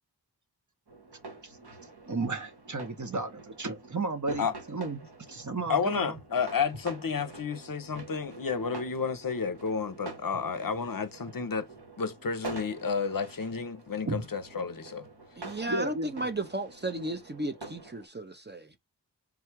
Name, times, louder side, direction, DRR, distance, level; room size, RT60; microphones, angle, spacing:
sound 1, 0.9-18.1, right 3 dB, 70° right, 1.1 m, -47 dB
voice 1, 2.1-5.0 5.3-6.2 14.0-14.3 15.7-16.2, right 3 dB, 45° right, 0.9 m, -33 dB
voice 2, 5.7-11.7 12.0-15.0, left 5 dB, 55° left, 0.6 m, -31 dB
voice 3, 15.4-18.8, right 2 dB, 25° right, 0.5 m, -34 dB
3.6 x 2.3 x 4.4 m
wide cardioid pair, 50°, 41 cm